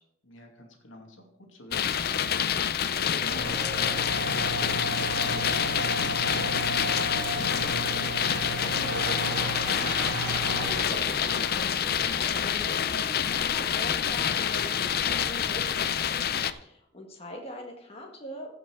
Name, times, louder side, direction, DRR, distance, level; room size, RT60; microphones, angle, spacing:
voice 1, 0.2-9.8, left 1 dB, 70° left, 2 dB, 2.3 m, -46 dB
sound 1, 1.7-16.5, left 8 dB, 50° left, 0.5 m, -27 dB
sound 2, 3.2-12.8, right 1 dB, 60° right, 2.1 m, -34 dB
voice 2, 10.1-16.3 16.6-18.5, left 1 dB, 30° left, 1 dB, 1.6 m, -42 dB
15.5 x 6.0 x 4.6 m, 0.78 s
head